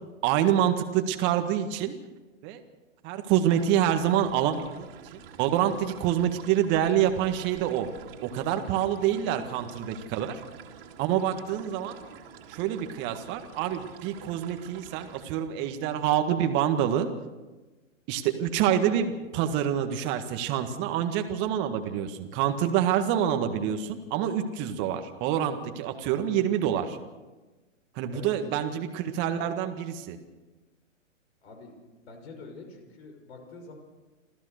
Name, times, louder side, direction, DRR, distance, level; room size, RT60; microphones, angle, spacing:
voice 1, 0.2-1.9 2.4-2.6 3.0-7.9 8.2-10.4 11.0-12.0 12.5-17.1 18.1-27.0 28.0-30.2, right 10 dB, 30° right, 7 dB, 1.8 m, -27 dB
sound 1, 3.4-15.2, right 7 dB, 45° right, 2.9 m, -48 dB
voice 2, 31.4-31.7 32.0-33.7, left 3 dB, 55° left, 4 dB, 6.1 m, -45 dB
27.0 x 14.5 x 6.6 m, 1.2 s
hypercardioid pair, 130°, 39 cm